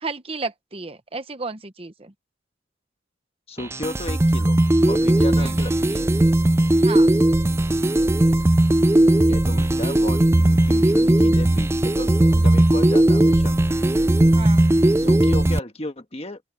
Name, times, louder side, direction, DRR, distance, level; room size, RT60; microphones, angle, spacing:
voice 1, 0.0-2.1 5.3-5.5 6.8-7.1 14.3-14.7, right 3 dB, 30° right, 0.9 m, -33 dB
voice 2, 3.5-6.1 9.2-13.5 15.0-16.4, left 1 dB, 30° left, 1.5 m, -34 dB
sound 1, 3.6-15.6, right 1 dB, 15° right, 0.3 m, -18 dB
open air
head